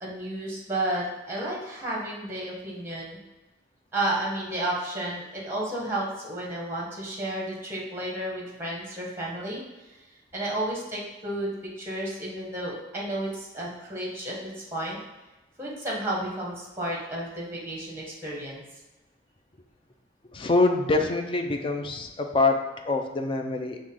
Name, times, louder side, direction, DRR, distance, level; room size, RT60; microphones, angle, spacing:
voice 1, 0.0-3.2 3.9-9.6 10.3-11.5 11.8-15.0 15.6-18.6, right 1 dB, 15° right, -4 dB, 1.0 m, -32 dB
voice 2, 20.3-23.8, left 3 dB, 30° left, 4 dB, 0.4 m, -25 dB
6.1 x 2.1 x 3.6 m, 1.1 s
head